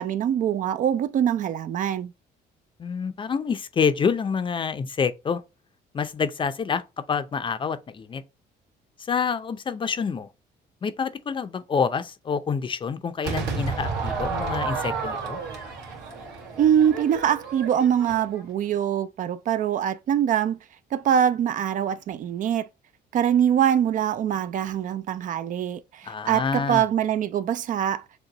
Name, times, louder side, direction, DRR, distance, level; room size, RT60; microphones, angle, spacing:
voice 1, 0.0-2.1 16.6-20.6 20.9-22.7 23.1-28.0, right 9 dB, 50° right, 0.4 m, -23 dB
voice 2, 2.8-5.4 5.9-6.8 7.1-8.2 9.1-10.3 10.8-15.4 26.1-26.8, left 6 dB, 30° left, 0.5 m, -27 dB
Crowd / Fireworks, 13.2-18.5, right 4 dB, 75° right, 2.1 m, -31 dB
6.5 x 2.2 x 2.8 m
cardioid pair, 110°, 17 cm